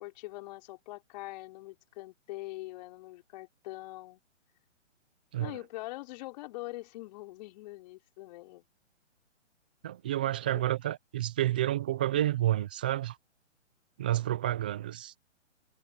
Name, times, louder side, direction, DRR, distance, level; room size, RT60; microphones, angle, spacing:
voice 1, 0.0-4.2 5.4-8.6 10.5-10.6, left 19 dB, 35° left, 5.3 m, -43 dB
voice 2, 9.8-13.2 14.0-15.1, right 13 dB, 10° right, 0.4 m, -30 dB
figure-of-eight pair, 135°, 37 cm